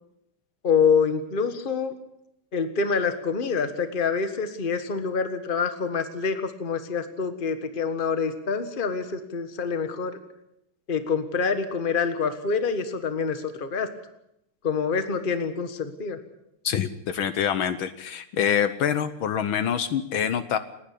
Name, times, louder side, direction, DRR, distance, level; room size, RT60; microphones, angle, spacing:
voice 1, 0.6-1.9 2.5-10.2 10.9-13.9 14.6-16.2, left 5 dB, 25° left, 9 dB, 1.4 m, -26 dB
voice 2, 16.6-20.6, left 8 dB, 70° left, 12 dB, 1.7 m, -25 dB
29.5 x 10.5 x 8.5 m, 0.81 s
omnidirectional pair, 2.4 m